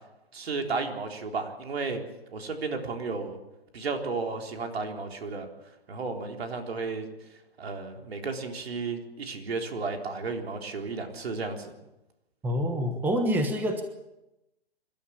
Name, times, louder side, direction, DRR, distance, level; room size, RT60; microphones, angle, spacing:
voice 1, 0.3-2.0 2.3-3.4 3.7-5.5 5.9-7.1 7.6-11.7, right 4 dB, 70° right, 4 dB, 3.9 m, -33 dB
voice 2, 12.4-13.8, equal, 5° right, 6 dB, 1.2 m, -26 dB
25.5 x 12.5 x 8.6 m, 0.94 s
hypercardioid pair, 150°, 31 cm